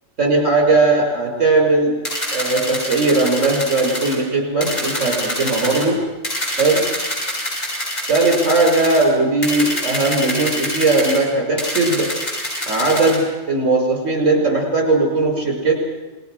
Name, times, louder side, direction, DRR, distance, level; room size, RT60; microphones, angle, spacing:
voice 1, 0.2-2.0 2.3-6.0 6.6-6.8 8.1-12.1 12.7-15.7, right 3 dB, 60° right, 2 dB, 5.7 m, -18 dB
sound 1, 2.0-4.2 4.6-5.9 6.2-9.1 9.4-11.2 11.6-13.2, equal, 75° left, 7.5 m, -26 dB
28.5 x 21.5 x 6.3 m, 1.3 s
omnidirectional pair, 1.4 m